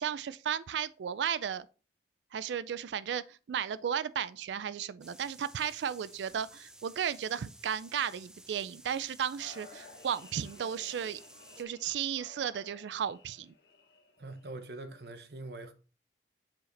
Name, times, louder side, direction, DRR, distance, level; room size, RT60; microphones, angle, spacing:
voice 1, 0.0-1.7 2.3-11.2 11.6-13.5, right 8 dB, 90° right, 0.3 m, -34 dB
sound 1, 5.0-11.6, right 1 dB, 5° right, 0.5 m, -55 dB
sound 2, 9.4-14.5, left 4 dB, 70° left, 1.1 m, -55 dB
voice 2, 14.2-15.7, right 2 dB, 70° right, 0.9 m, -43 dB
7.5 x 4.9 x 3.2 m
head